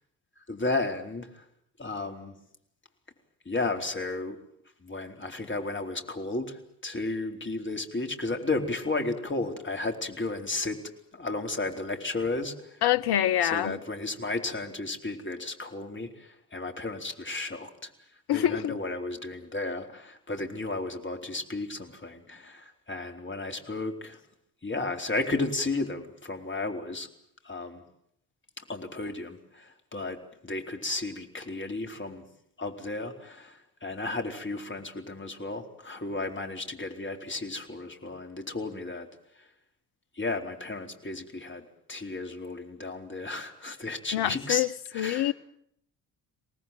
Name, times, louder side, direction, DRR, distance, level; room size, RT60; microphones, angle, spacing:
voice 1, 0.5-1.4 1.8-2.3 3.5-4.4 4.8-10.8 11.1-12.8 13.4-17.9 18.3-24.2 24.6-27.1 27.4-27.8 28.6-32.2 32.6-39.1 39.4-39.5 40.2-44.7 44.9-45.3, left 2 dB, 25° left, 4.2 m, -33 dB
voice 2, 12.8-13.8 18.3-18.8 44.1-44.7 44.9-45.3, left 12 dB, 50° left, 1.2 m, -25 dB
26.0 x 19.0 x 9.3 m
hypercardioid pair, 45°, 49 cm